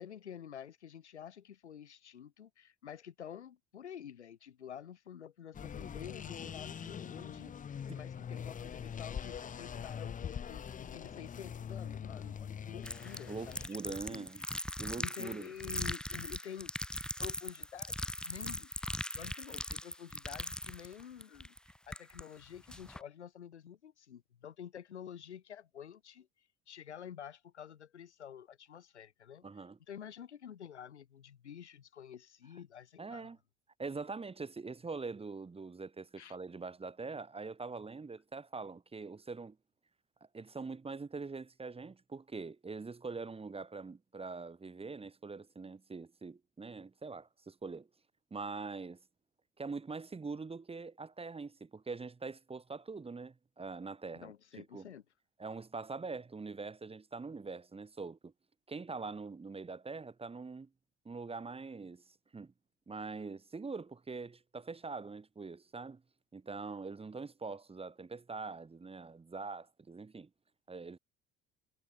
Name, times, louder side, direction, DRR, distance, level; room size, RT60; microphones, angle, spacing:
voice 1, 0.0-13.6 13.9-14.5 15.0-16.7 17.2-21.6 21.9-26.3 26.7-29.4 29.9-33.3 36.2-36.4 54.1-55.0, left 9 dB, 80° left, 1.6 m, -49 dB
sound 1, 5.5-13.7, left 7 dB, 25° left, 0.8 m, -43 dB
sound 2, 12.8-22.2 22.7-23.0, left 1 dB, ahead, 1.0 m, -40 dB
voice 2, 13.3-14.4 14.8-15.5 29.4-29.8 33.0-33.4 33.8-39.6 40.3-47.9 48.3-49.0 49.6-54.9 55.4-58.3 58.7-60.7 61.1-62.5 62.9-66.0 66.3-70.3 70.7-71.0, right 4 dB, 15° right, 1.7 m, -43 dB
figure-of-eight pair, 60°, 34 cm